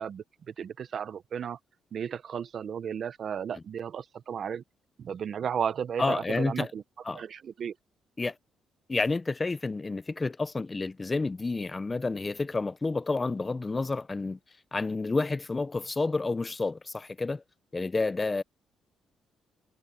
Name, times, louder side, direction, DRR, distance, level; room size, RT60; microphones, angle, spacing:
voice 1, 0.0-1.6 1.9-4.6 5.0-6.8 7.1-7.7, right 8 dB, 55° right, 0.8 m, -34 dB
voice 2, 6.0-6.7 7.0-7.2 8.2-8.4 8.9-14.4 14.7-17.4 17.7-18.4, left 3 dB, 25° left, 0.6 m, -30 dB
cardioid pair, 90°, 0 cm